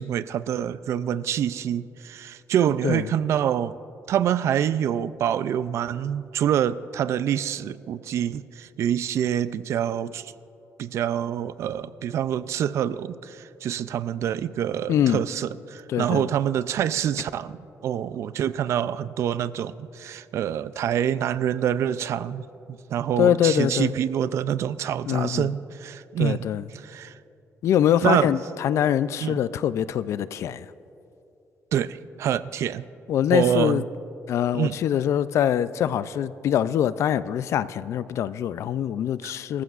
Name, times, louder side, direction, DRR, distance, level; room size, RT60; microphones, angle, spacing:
voice 1, 0.0-3.8 4.1-10.3 10.8-17.6 17.8-22.5 22.9-26.5 26.7-27.1 28.0-28.3 29.2-29.4 31.7-32.8 33.3-33.8 34.5-34.8 39.2-39.3, right 10 dB, 65° right, 15 dB, 0.4 m, -26 dB
voice 2, 14.9-15.2 15.9-16.3 23.2-23.9 25.1-25.5 26.2-26.7 27.6-30.7 33.1-33.8 34.3-39.6, left 10 dB, 65° left, 15 dB, 0.4 m, -24 dB
24.5 x 14.5 x 2.5 m, 2.8 s
cardioid pair, 160°, 5 cm